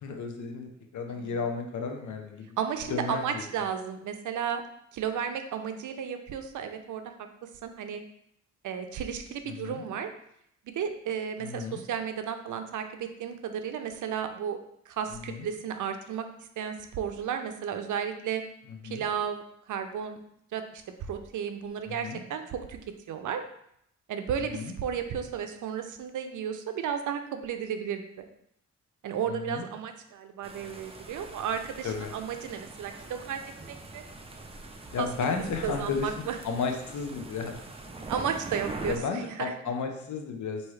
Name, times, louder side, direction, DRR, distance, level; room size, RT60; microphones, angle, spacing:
voice 1, 0.0-2.5 2.9-3.4 9.5-9.8 11.4-11.8 15.1-15.5 18.8-19.1 21.9-22.2 24.5-24.7 29.3-29.6 31.8-32.1 34.9-37.6 38.8-40.6, left 5 dB, 80° left, 4 dB, 0.7 m, -33 dB
voice 2, 2.6-4.6 4.9-7.0 7.6-8.0 8.6-10.1 10.8-14.6 14.9-16.3 16.6-18.4 18.8-19.4 19.7-20.2 20.5-22.8 23.1-23.4 24.1-28.3 29.0-33.4 33.7-34.0 35.0-35.1 35.6-36.4 38.1-39.5, right 8 dB, 85° right, 7 dB, 0.5 m, -33 dB
sound 1, 30.4-39.0, right 2 dB, 20° right, 0.5 m, -43 dB
4.6 x 2.8 x 3.2 m, 0.73 s
cardioid pair, 90°, 30 cm